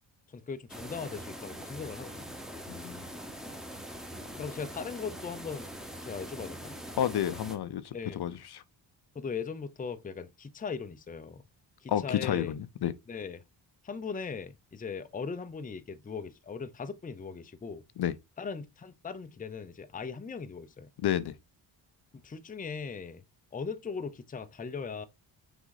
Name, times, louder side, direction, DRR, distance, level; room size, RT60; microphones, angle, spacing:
voice 1, 0.3-2.4 4.4-5.7 6.0-6.8 7.9-8.2 9.1-11.4 11.8-12.5 13.1-13.4 13.8-17.8 18.4-20.9 22.1-23.2 23.5-25.1, left 5 dB, 20° left, 0.6 m, -39 dB
sound 1, 0.7-7.6, equal, ahead, 1.1 m, -43 dB
voice 2, 2.7-3.0 7.0-8.6 11.9-12.9 18.0-18.1 21.0-21.3, left 10 dB, 60° left, 0.7 m, -30 dB
6.2 x 4.5 x 4.0 m
cardioid pair, 110°, 45 cm